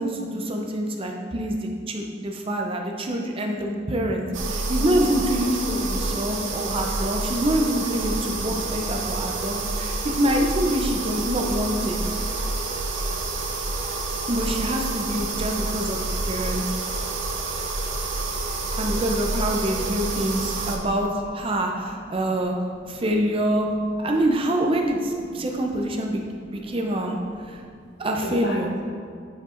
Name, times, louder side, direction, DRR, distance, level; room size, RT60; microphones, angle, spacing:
voice 1, 0.0-12.0 14.3-16.6 18.8-22.5 22.9-23.7 24.0-26.2 26.5-27.2 27.5-27.6 28.0-28.7, right 1 dB, 30° right, 1 dB, 0.5 m, -26 dB
sound 1, 4.3-20.8, right 3 dB, 75° right, 0.8 m, -28 dB
voice 2, 21.4-23.1 23.8-23.9 24.7-25.6 26.0-26.9 27.1-27.9 28.2-28.8, equal, 60° left, -1 dB, 1.1 m, -40 dB
10.5 x 4.8 x 2.5 m, 2.2 s
head